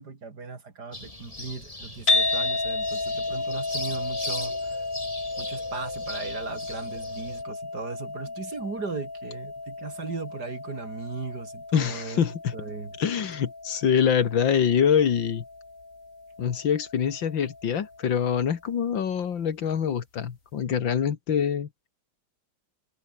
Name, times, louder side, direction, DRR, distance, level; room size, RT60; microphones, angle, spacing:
voice 1, 0.0-4.8 5.4-12.2 12.5-12.9, right 4 dB, 55° right, 3.3 m, -37 dB
sound 1, 0.9-7.4, left 1 dB, 20° left, 3.7 m, -40 dB
sound 2, 2.1-18.3, left 3 dB, 40° left, 4.4 m, -33 dB
voice 2, 11.7-12.5 13.0-15.4 16.4-21.9, left 8 dB, 80° left, 2.4 m, -25 dB
omnidirectional pair, 2.0 m